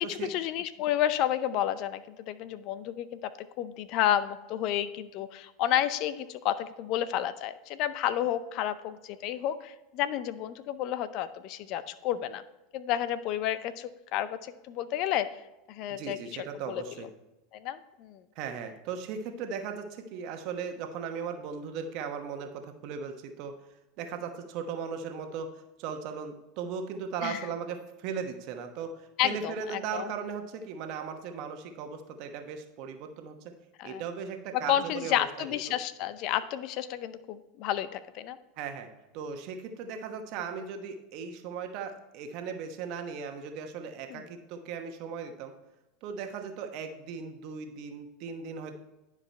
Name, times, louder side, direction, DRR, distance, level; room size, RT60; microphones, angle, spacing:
voice 1, 0.0-2.0 2.3-3.2 3.6-12.4 12.7-15.3 15.7-17.1 17.5-18.2 27.2-27.4 29.2-30.0 33.8-34.0 34.5-38.4 44.1-44.2, left 11 dB, 55° left, 14 dB, 0.6 m, -31 dB
voice 2, 15.9-17.1 18.4-23.6 24.0-33.5 33.8-35.3 35.7-35.8 38.6-45.5 46.0-48.7, right 6 dB, 60° right, 6 dB, 1.1 m, -37 dB
10.5 x 4.9 x 4.4 m, 0.99 s
hypercardioid pair, 100°, 0 cm